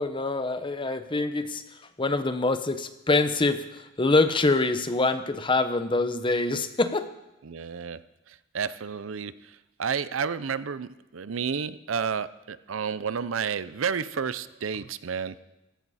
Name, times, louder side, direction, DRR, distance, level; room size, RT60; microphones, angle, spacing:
voice 1, 0.0-7.1, left 3 dB, 25° left, 10 dB, 0.8 m, -25 dB
voice 2, 7.4-8.0 8.3-15.3, right 6 dB, 75° right, 15 dB, 0.6 m, -31 dB
15.5 x 15.0 x 4.2 m, 0.96 s
head